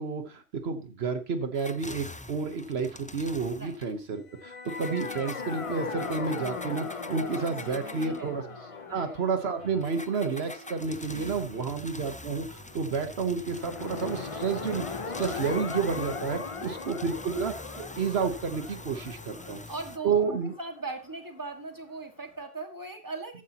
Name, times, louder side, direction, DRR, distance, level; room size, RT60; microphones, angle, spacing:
voice 1, 0.0-8.4 8.9-19.6 20.0-20.5, right 5 dB, 70° right, 8 dB, 1.3 m, -30 dB
sound 1, 1.5-3.9 4.6-8.3 9.8-20.0, left 2 dB, 15° left, 0.3 m, -45 dB
sound 2, 4.3-11.5 13.4-21.2, left 4 dB, 35° left, 0.8 m, -39 dB
sound 3, 7.0-15.9, equal, 65° left, 4.5 m, -52 dB
voice 2, 7.0-8.4 8.8-9.2 11.1-11.7 16.5-16.9 19.3-20.1 20.6-23.4, right 3 dB, 20° right, 4 dB, 1.8 m, -40 dB
14.0 x 9.8 x 2.9 m, 0.31 s
omnidirectional pair, 1.1 m